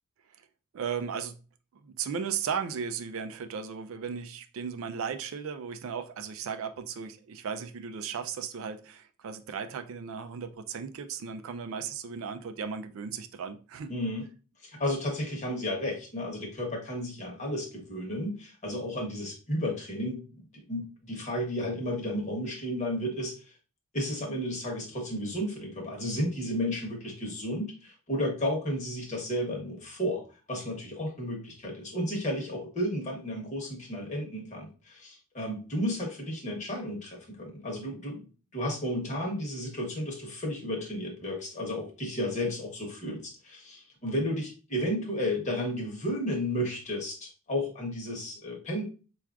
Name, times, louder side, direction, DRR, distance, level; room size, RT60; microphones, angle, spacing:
voice 1, 0.7-1.4 1.8-13.9, right 6 dB, 65° right, 0.3 m, -36 dB
voice 2, 13.9-14.2 14.6-20.2 20.5-23.3 23.9-30.2 30.5-48.8, left 1 dB, 35° left, 1.0 m, -33 dB
4.4 x 2.4 x 2.3 m
head